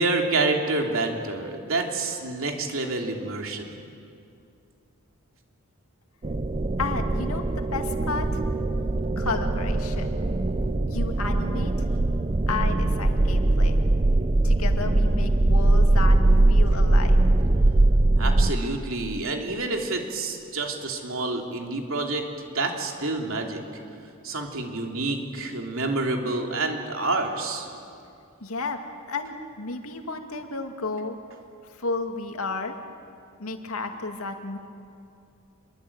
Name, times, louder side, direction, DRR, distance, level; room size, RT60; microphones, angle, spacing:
voice 1, 0.0-3.7 18.2-22.3 22.5-23.6 24.2-27.8, right 3 dB, 65° right, 2 dB, 3.3 m, -28 dB
sound 1, 6.2-18.5, right 2 dB, 30° right, 0.7 m, -21 dB
voice 2, 6.8-8.4 9.2-10.2 10.9-11.7 12.5-13.8 14.4-16.2 16.5-17.2 28.4-28.8 29.1-31.2 31.7-32.8 33.4-34.6, left 3 dB, 85° left, 5 dB, 2.4 m, -32 dB
27.0 x 22.5 x 8.9 m, 2.5 s
head